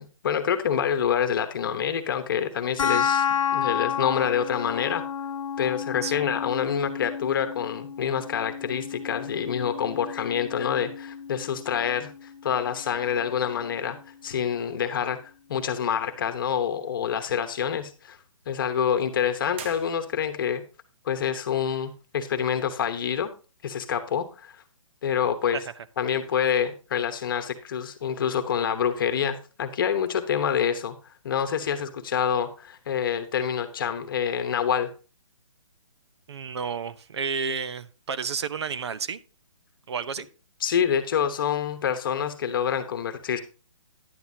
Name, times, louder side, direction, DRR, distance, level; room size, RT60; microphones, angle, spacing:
voice 1, 0.0-3.2 3.5-5.0 5.6-14.0 14.2-18.2 18.5-20.6 21.0-23.3 23.6-24.6 25.0-25.6 26.0-31.0 31.2-34.9 40.6-43.4, left 8 dB, 40° left, 1.1 m, -27 dB
sound 1, 2.8-13.8, left 8 dB, 75° left, 0.9 m, -31 dB
voice 2, 6.0-6.3 25.5-25.6 36.3-39.2 39.9-40.3, right 6 dB, 55° right, 0.7 m, -31 dB
sound 2, 19.5-20.6, right 7 dB, 20° right, 0.5 m, -43 dB
10.5 x 9.2 x 2.7 m
hypercardioid pair, 165°, 17 cm